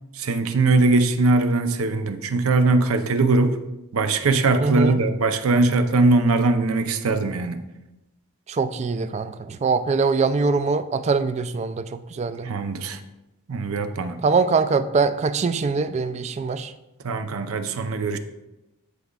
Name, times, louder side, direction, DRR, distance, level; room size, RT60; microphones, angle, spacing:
voice 1, 0.1-3.6 3.9-7.6 12.4-13.0 13.5-14.2 17.0-18.2, right 3 dB, 75° right, 9 dB, 0.6 m, -21 dB
voice 2, 4.6-5.0 8.5-12.5 14.2-16.7, right 4 dB, 30° right, 12 dB, 0.3 m, -23 dB
13.5 x 5.0 x 2.3 m, 0.99 s
head